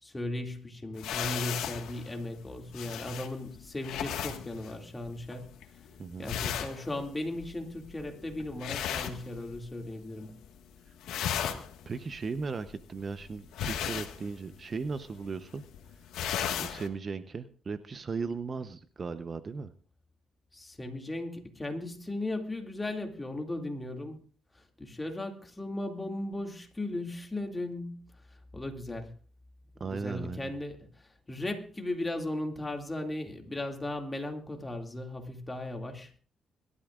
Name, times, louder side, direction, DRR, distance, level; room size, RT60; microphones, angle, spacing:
voice 1, 0.0-5.5 6.2-10.4 20.5-24.2 24.8-28.0 28.5-29.1 29.9-30.8 31.3-36.2, left 1 dB, 15° left, 2.4 m, -37 dB
sound 1, 1.0-9.9 10.2-10.7 10.9-16.9, left 9 dB, 85° left, 1.6 m, -37 dB
voice 2, 6.0-6.3 11.9-15.6 16.5-19.7 29.8-30.5, right 4 dB, 40° right, 0.8 m, -37 dB
23.0 x 12.5 x 2.5 m
cardioid pair, 90°, 0 cm